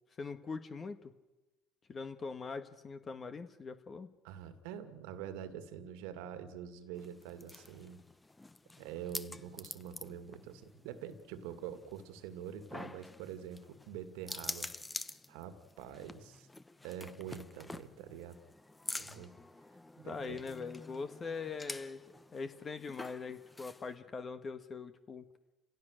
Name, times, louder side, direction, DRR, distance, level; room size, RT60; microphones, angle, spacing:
voice 1, 0.2-1.1 1.9-4.1 20.1-22.0 22.3-25.3, left 4 dB, 35° left, 8 dB, 1.7 m, -42 dB
voice 2, 4.2-8.0 8.8-14.7 15.3-16.5 16.8-18.4 19.0-19.3 20.0-20.4, right 9 dB, 80° right, 9 dB, 2.1 m, -45 dB
sound 1, 7.0-24.0, left 2 dB, 15° left, 1.1 m, -48 dB
30.0 x 16.5 x 6.6 m, 1.1 s
hypercardioid pair, 75°, 0 cm